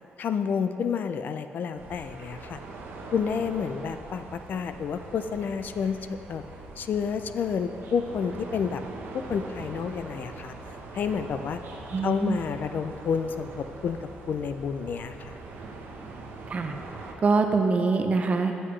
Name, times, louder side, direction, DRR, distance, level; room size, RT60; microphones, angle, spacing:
voice 1, 0.2-2.6 3.1-6.0 6.3-6.4 6.8-8.8 9.1-10.5 10.9-11.6 12.0-14.0 14.3-15.4, left 6 dB, 60° left, 9 dB, 0.3 m, -29 dB
sound 1, 1.8-17.1, right 3 dB, 80° right, 0.8 m, -42 dB
voice 2, 11.9-12.4 16.5-16.7 17.2-18.5, right 4 dB, 40° right, 5 dB, 0.5 m, -24 dB
7.9 x 7.6 x 3.2 m, 2.9 s
cardioid pair, 120°, 4 cm